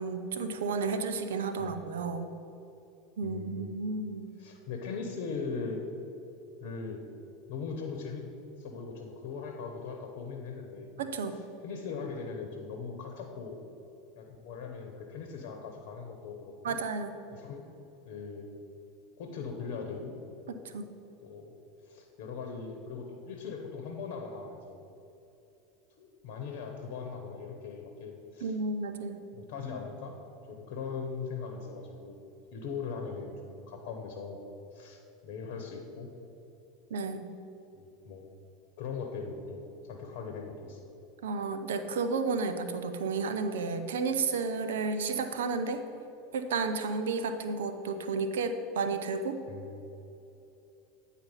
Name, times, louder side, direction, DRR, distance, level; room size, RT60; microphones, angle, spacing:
voice 1, 0.0-2.3 3.2-4.3 11.0-11.4 16.6-17.2 20.6-20.9 28.4-29.2 36.9-37.3 41.2-45.8 46.3-49.4, right 4 dB, 75° right, 8 dB, 0.5 m, -32 dB
voice 2, 3.2-3.7 4.4-5.8 6.6-7.0 7.5-8.3 8.6-10.9 11.6-13.5 14.2-16.8 17.3-17.6 18.0-18.5 19.2-20.1 21.2-21.5 21.9-24.8 26.0-28.6 29.3-30.2 30.5-32.2 32.5-34.4 34.7-36.1 37.7-38.3 38.8-40.8 49.5-49.8, left 5 dB, 60° left, 3 dB, 1.0 m, -40 dB
9.4 x 4.1 x 5.6 m, 2.9 s
hypercardioid pair, 85°, 0 cm